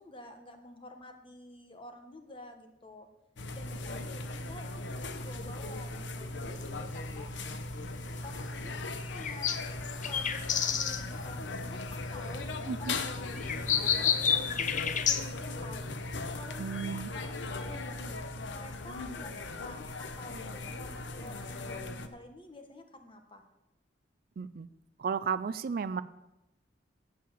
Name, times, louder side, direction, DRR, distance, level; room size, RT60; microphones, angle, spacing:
voice 1, 0.0-3.1 3.5-7.3 8.2-9.5 10.0-12.5 12.8-14.7 15.4-15.9 16.4-23.4, left 2 dB, 30° left, 6 dB, 1.2 m, -49 dB
sound 1, 3.4-22.1, left 2 dB, 80° left, 0.8 m, -38 dB
sound 2, 6.6-15.2, left 8 dB, 45° left, 0.7 m, -32 dB
voice 2, 12.7-13.0 16.6-17.1 24.4-24.7 25.0-26.0, right 6 dB, 55° right, 15 dB, 0.4 m, -33 dB
8.6 x 7.5 x 7.2 m, 0.94 s
head